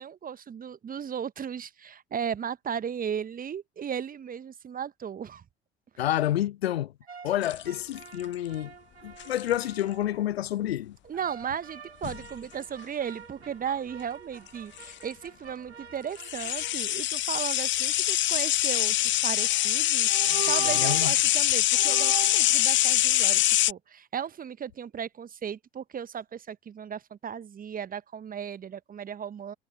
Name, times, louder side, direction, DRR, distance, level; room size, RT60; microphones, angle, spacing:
voice 1, 0.0-5.4 11.0-29.5, right 8 dB, 25° right, 1.2 m, -36 dB
voice 2, 6.0-6.9 7.2-8.7 9.0-11.0 20.6-21.1, left 12 dB, 75° left, 0.5 m, -29 dB
sound 1, 7.1-10.4 11.1-16.9, right 6 dB, 85° right, 1.4 m, -49 dB
sound 2, 7.4-8.2 9.2-9.6 12.0-12.3 14.5-14.6 14.8-14.9 16.2-23.7, left 14 dB, 35° left, 0.8 m, -24 dB
sound 3, 19.4-19.7 20.1-21.2 21.7-22.5, right 17 dB, 65° right, 0.6 m, -36 dB
figure-of-eight pair, 60°, 31 cm